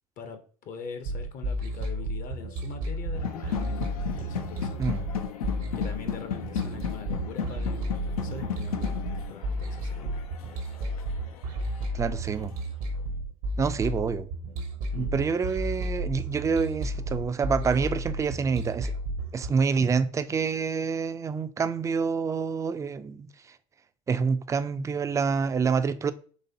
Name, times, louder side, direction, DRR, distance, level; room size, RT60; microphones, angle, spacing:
voice 1, 0.2-4.9 5.7-10.3 14.9-15.2, left 5 dB, 50° left, 0.7 m, -43 dB
sound 1, 1.0-19.5, right 1 dB, 80° right, 0.9 m, -33 dB
sound 2, 3.1-12.0, left 9 dB, 90° left, 0.4 m, -35 dB
voice 2, 11.9-12.6 13.6-14.3 15.0-18.9 19.3-23.6 24.1-26.1, right 5 dB, 15° right, 0.3 m, -27 dB
4.1 x 3.1 x 2.7 m
hypercardioid pair, 75°, 18 cm